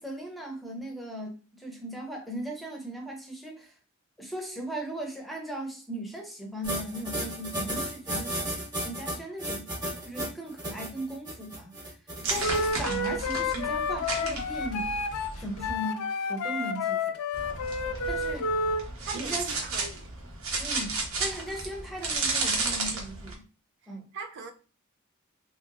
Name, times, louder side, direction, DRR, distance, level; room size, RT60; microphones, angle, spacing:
voice 1, 0.0-3.7 4.2-8.3 8.8-9.7 10.1-12.0 12.3-15.0 15.4-17.2 18.1-18.5 19.1-19.5 20.6-23.4 23.9-24.1, right 1 dB, ahead, 0.7 m, -37 dB
sound 1, 6.6-12.7, right 1 dB, 20° right, 1.0 m, -34 dB
sound 2, 12.2-15.7 17.3-23.3, right 3 dB, 75° right, 1.0 m, -33 dB
Wind instrument woodwind instrument, 12.4-18.8, left 3 dB, 80° left, 0.4 m, -30 dB
voice 2, 19.1-20.1 24.1-24.5, right 5 dB, 55° right, 0.4 m, -39 dB
3.1 x 2.8 x 2.6 m
head